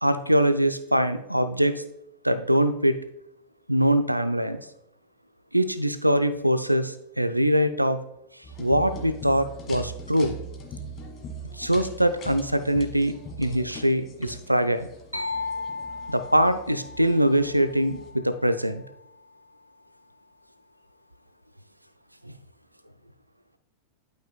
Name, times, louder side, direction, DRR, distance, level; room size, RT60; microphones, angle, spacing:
voice 1, 0.0-1.8 2.2-3.0 3.7-4.7 5.5-8.0 8.6-10.4 11.5-13.1 13.4-14.9 16.1-18.8 22.2-22.3, equal, 90° right, 12 dB, 0.4 m, -23 dB
sound 1, 8.4-18.1, right 2 dB, 30° left, 1.5 m, -41 dB
sound 2, 15.1-18.8, left 3 dB, 85° left, 0.8 m, -36 dB
12.0 x 5.4 x 2.2 m, 0.82 s
figure-of-eight pair, 90°, 0 cm